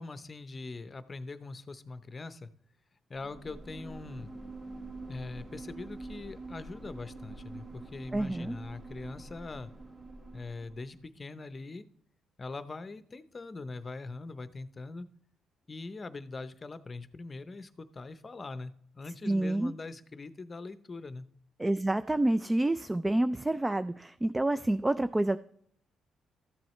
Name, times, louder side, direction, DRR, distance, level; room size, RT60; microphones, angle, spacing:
voice 1, 0.0-2.5 3.1-4.3 5.1-9.7 10.3-11.9 12.4-15.1 15.7-21.3, left 3 dB, 30° left, 13 dB, 0.6 m, -42 dB
sound 1, 3.1-11.0, right 2 dB, 35° right, 2.2 m, -46 dB
voice 2, 8.1-8.6 19.2-19.7 21.6-25.4, right 1 dB, 15° right, 12 dB, 0.3 m, -28 dB
13.5 x 7.7 x 3.2 m, 0.67 s
cardioid pair, 90°, 0 cm